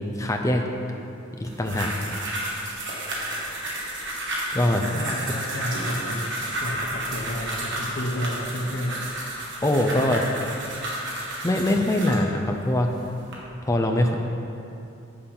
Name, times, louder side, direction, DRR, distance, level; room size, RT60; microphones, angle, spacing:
voice 1, 0.2-0.6 1.4-1.9 4.5-4.8 9.6-10.3 11.4-12.9 13.7-14.1, left 1 dB, 15° left, 3 dB, 0.5 m, -22 dB
sound 1, 1.4-12.3 12.9-13.3, right 1 dB, 60° right, 1.6 m, -32 dB
voice 2, 4.9-9.0, equal, 55° left, -5 dB, 1.0 m, -31 dB
7.3 x 6.8 x 5.5 m, 2.7 s
head